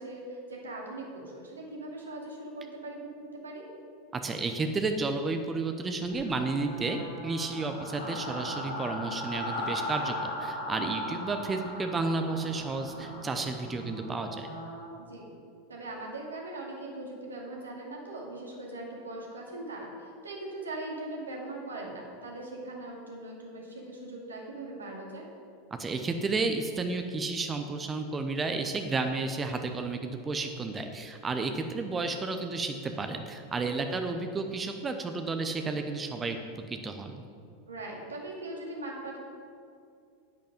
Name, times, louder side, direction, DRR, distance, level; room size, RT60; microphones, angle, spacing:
voice 1, 0.0-3.7 10.8-11.1 15.1-15.3 15.7-25.3 33.6-33.7 37.7-39.2, right 2 dB, 75° right, -2 dB, 2.4 m, -40 dB
voice 2, 4.1-14.5 25.8-36.4 36.7-37.2, right 3 dB, 20° right, 6 dB, 0.8 m, -32 dB
sound 1, 6.1-14.9, left 1 dB, 85° left, 2.6 m, -38 dB
10.5 x 9.1 x 5.3 m, 2.4 s
figure-of-eight pair, 85°, 0 cm